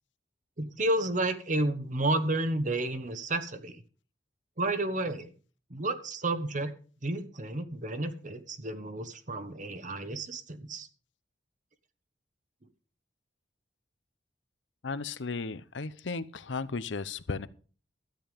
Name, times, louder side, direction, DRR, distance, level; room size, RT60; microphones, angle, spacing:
voice 1, 0.6-3.8 4.6-5.3 5.7-6.7 7.0-10.9, right 2 dB, 45° right, 1.3 m, -31 dB
voice 2, 14.8-17.5, left 4 dB, 90° left, 0.8 m, -35 dB
13.0 x 9.3 x 5.1 m
head